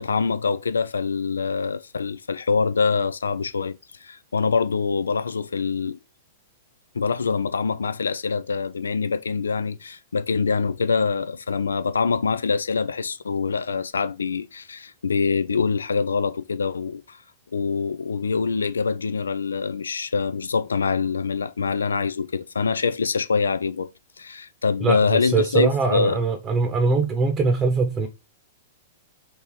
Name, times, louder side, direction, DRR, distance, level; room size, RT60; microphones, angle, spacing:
voice 1, 0.0-3.7 4.0-6.0 6.9-17.2 17.5-23.9 24.2-26.2, left 5 dB, 80° left, 0.5 m, -24 dB
voice 2, 24.8-28.1, right 4 dB, 25° right, 0.9 m, -22 dB
3.9 x 2.8 x 4.6 m
hypercardioid pair, 105°, 0 cm